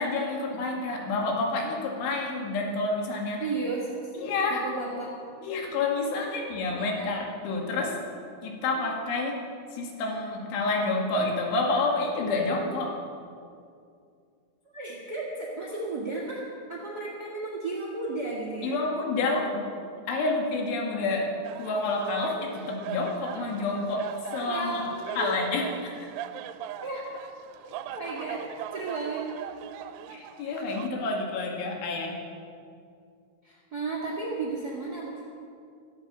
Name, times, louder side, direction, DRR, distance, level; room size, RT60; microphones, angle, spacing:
voice 1, 0.0-3.4 4.2-4.6 5.4-8.0 8.4-9.4 9.7-13.0 18.6-19.7 20.1-24.9 25.2-26.0 30.1-32.2, left 3 dB, 80° left, 1 dB, 4.5 m, -29 dB
voice 2, 3.4-4.1 4.5-5.1 6.7-7.1 14.7-18.8 24.5-25.4 26.8-27.0 28.0-28.4 28.7-29.2 33.4-35.2, right 3 dB, 60° right, -3 dB, 1.0 m, -34 dB
sound 1, 21.4-30.9, right 10 dB, 85° right, 3.1 m, -40 dB
16.0 x 13.5 x 6.1 m, 2.4 s
omnidirectional pair, 5.4 m